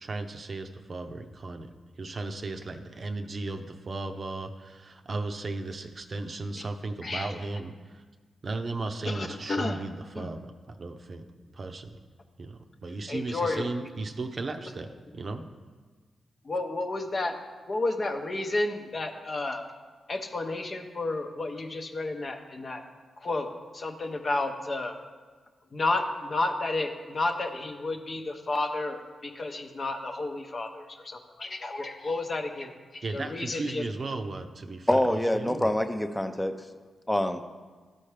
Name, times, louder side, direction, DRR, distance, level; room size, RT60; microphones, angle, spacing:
voice 1, 0.0-1.7 2.0-8.0 8.4-11.3 11.5-12.0 12.4-15.4 33.0-35.7, right 3 dB, 50° right, 7 dB, 0.6 m, -36 dB
voice 2, 7.0-7.3 9.1-9.8 10.2-10.3 13.1-13.7 14.5-14.7 16.4-17.3 17.7-19.7 20.1-22.8 23.2-24.9 25.7-33.8, left 2 dB, 50° left, 4 dB, 0.8 m, -31 dB
voice 3, 34.9-36.6 37.1-37.4, left 1 dB, 10° left, 8 dB, 0.6 m, -25 dB
12.5 x 4.3 x 3.3 m, 1.4 s
supercardioid pair, 45°, 0 cm